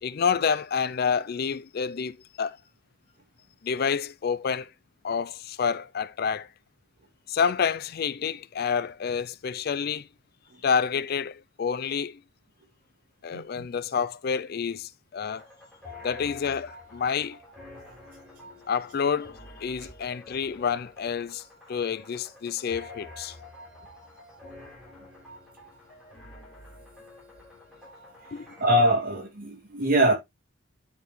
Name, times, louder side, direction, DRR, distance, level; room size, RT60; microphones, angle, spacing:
voice 1, 0.0-2.6 3.6-4.7 5.0-6.5 7.3-10.1 10.6-12.2 13.2-15.4 16.0-17.4 18.7-21.4 21.7-23.4 28.3-28.6, left 6 dB, 45° left, 0.4 m, -28 dB
voice 2, 13.3-13.6 28.6-30.1, right 1 dB, 40° right, 2.7 m, -23 dB
sound 1, 15.2-28.9, left 2 dB, 5° right, 4.9 m, -48 dB
10.0 x 5.2 x 3.1 m
head